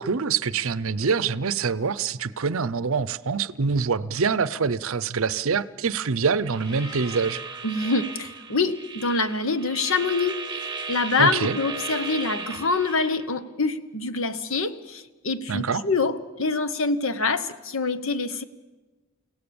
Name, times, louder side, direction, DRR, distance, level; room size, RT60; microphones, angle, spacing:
voice 1, 0.0-7.4 11.2-11.6 15.5-15.9, right 5 dB, 65° right, 0.6 m, -25 dB
Meow, 6.5-7.4, left 3 dB, 85° left, 2.9 m, -45 dB
sound 1, 6.5-13.2, right 4 dB, 20° right, 1.9 m, -36 dB
voice 2, 7.6-10.5 10.9-18.4, left 3 dB, 65° left, 1.1 m, -25 dB
30.0 x 17.5 x 7.1 m
head